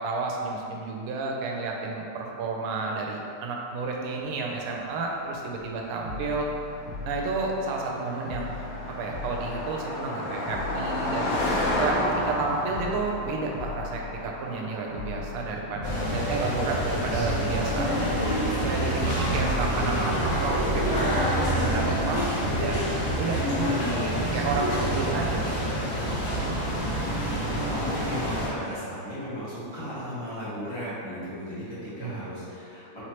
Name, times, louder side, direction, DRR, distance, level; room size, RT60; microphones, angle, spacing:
voice 1, 0.0-6.5 7.0-8.6 9.0-11.3 11.8-15.8 16.1-17.9 18.2-22.9 23.2-25.8 32.0-32.2, right 3 dB, 80° right, 0 dB, 1.4 m, -31 dB
Car passing by, 4.9-18.6, left 1 dB, 75° left, 0.8 m, -33 dB
sound 1, 6.0-7.9 8.3-10.2 10.5-12.3 12.7-14.6 14.9-16.8 17.1-19.0 19.4-23.5 23.8-23.9, left 3 dB, 55° right, 0.7 m, -39 dB
sound 2, 15.8-28.5, equal, 60° left, 1.2 m, -27 dB
voice 2, 19.0-20.2 27.0-33.0, equal, 20° left, -12 dB, 0.9 m, -36 dB
4.3 x 3.1 x 2.9 m, 2.6 s
omnidirectional pair, 2.3 m